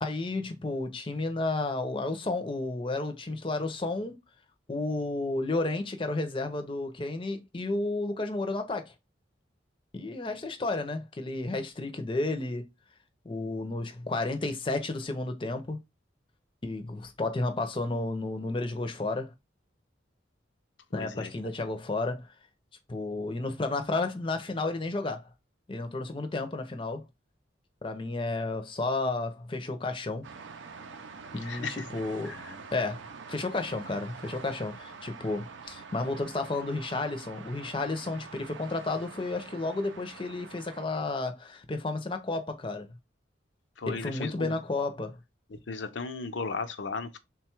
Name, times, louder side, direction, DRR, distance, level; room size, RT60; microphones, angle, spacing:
voice 1, 0.0-4.2 4.7-8.9 9.9-12.7 13.2-15.8 16.6-19.3 20.9-22.3 22.9-25.3 25.7-27.0 27.8-30.2 31.3-31.6 31.9-32.3 32.7-42.9 43.9-45.2, left 2 dB, 25° left, 0.6 m, -32 dB
voice 2, 20.9-21.3 31.4-31.8 32.2-32.6 43.8-44.6 45.5-47.2, left 4 dB, 75° left, 0.6 m, -36 dB
sound 1, 30.2-40.9, right 5 dB, 80° right, 0.5 m, -46 dB
3.7 x 2.3 x 4.4 m
head